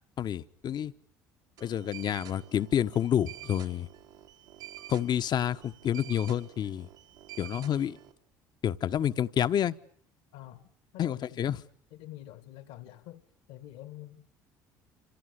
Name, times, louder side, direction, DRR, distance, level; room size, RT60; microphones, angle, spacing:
voice 1, 0.2-0.9 1.6-3.9 4.9-6.9 7.4-8.0 8.6-9.7 11.0-11.6, left 10 dB, 50° left, 1.3 m, -29 dB
sound 1, 1.6-8.1, right 12 dB, 75° right, 3.7 m, -48 dB
voice 2, 10.3-10.7 10.9-11.6 11.9-14.3, left 14 dB, 70° left, 2.1 m, -47 dB
27.5 x 27.0 x 6.8 m
hypercardioid pair, 60°, 10 cm